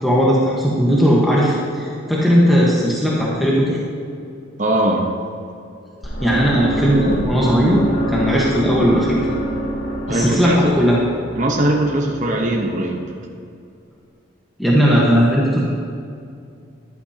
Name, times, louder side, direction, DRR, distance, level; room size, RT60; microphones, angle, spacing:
voice 1, 0.0-3.8 6.2-7.8 8.1-9.3 10.1-11.0 14.6-15.7, equal, ahead, -6 dB, 1.3 m, -17 dB
voice 2, 4.6-5.1 10.1-10.8 11.3-13.0, right 1 dB, 40° right, 0 dB, 1.0 m, -20 dB
sound 1, 6.0-12.1, equal, 60° left, 2.9 m, -25 dB
13.5 x 12.0 x 2.9 m, 2.4 s
head